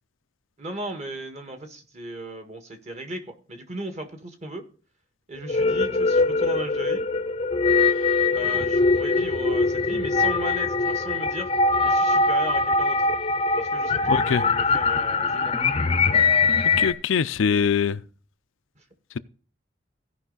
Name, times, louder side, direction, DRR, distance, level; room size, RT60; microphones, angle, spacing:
voice 1, 0.6-4.7 5.3-7.0 8.3-11.5 11.8-13.1 13.5-15.5, right 1 dB, 35° right, 1.6 m, -36 dB
sound 1, 5.4-16.9, left 3 dB, 30° left, 0.6 m, -22 dB
voice 2, 14.1-14.4 16.8-18.0, left 6 dB, 90° left, 0.5 m, -23 dB
16.0 x 5.4 x 3.9 m
head